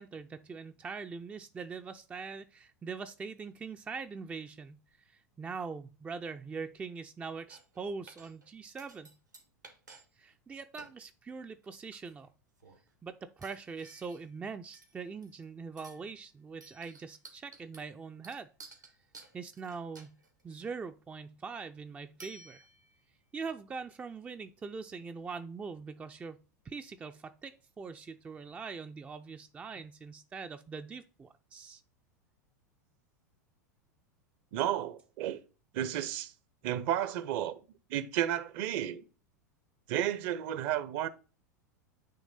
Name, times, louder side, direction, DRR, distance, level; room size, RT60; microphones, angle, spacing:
voice 1, 0.0-9.1 10.2-12.3 13.0-18.5 19.3-20.2 20.4-22.6 23.3-26.4 26.6-31.8, right 5 dB, 15° right, 0.4 m, -42 dB
sound 1, 7.5-7.8 8.1-8.5 8.8-10.0 10.3-10.4 10.8-11.0 11.6-12.3 12.6-12.9 13.4-14.4 14.7-15.4 15.8-16.1 16.6-20.7 22.2-23.0, right 3 dB, 85° right, 1.6 m, -55 dB
voice 2, 34.5-35.4 35.7-36.3 36.6-37.6 37.9-39.0 39.9-41.1, right 11 dB, 45° right, 0.7 m, -32 dB
9.3 x 3.2 x 3.9 m
figure-of-eight pair, 85°, 9 cm